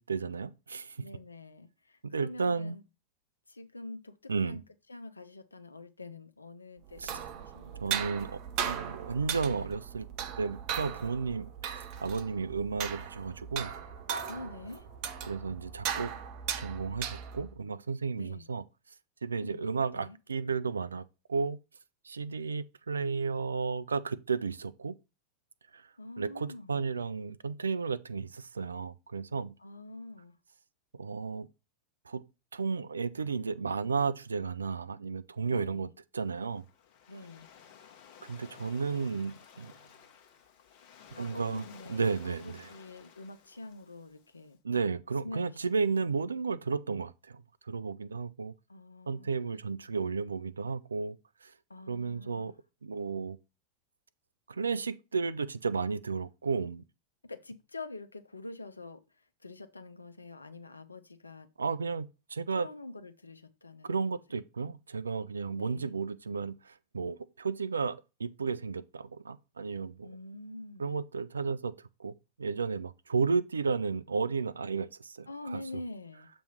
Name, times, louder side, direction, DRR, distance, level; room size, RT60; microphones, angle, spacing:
voice 1, 0.0-1.0 2.0-2.8 4.3-4.6 7.0-7.1 7.8-10.1 10.4-13.7 15.2-16.1 16.6-18.6 19.2-21.6 22.0-24.9 25.7-25.8 26.2-29.5 30.9-31.5 32.1-32.2 32.5-35.9 36.1-36.6 38.2-39.7 41.2-41.6 41.9-42.7 44.6-48.5 49.1-51.2 51.4-51.5 51.9-52.5 52.8-53.4 54.5-56.8 61.6-62.7 63.8-70.2 70.8-71.7 72.0-72.1 72.4-75.6, right 5 dB, 75° right, 0.4 m, -33 dB
voice 2, 1.0-2.8 3.5-4.6 4.9-8.1 14.3-14.9 18.2-18.5 19.4-19.6 19.9-20.2 26.0-26.8 29.6-30.3 35.5-35.9 37.1-37.5 41.2-44.6 45.2-45.6 45.8-46.1 48.7-49.3 51.7-52.6 57.2-59.0 59.4-61.5 62.5-64.0 65.5-65.9 70.0-70.9 75.3-76.3, left 2 dB, 80° left, 0.6 m, -45 dB
sound 1, 6.9-17.6, right 8 dB, 40° right, 0.7 m, -38 dB
Waves surf, 36.2-44.5, left 8 dB, 45° left, 1.1 m, -55 dB
6.9 x 3.1 x 5.4 m
figure-of-eight pair, 90°, 0 cm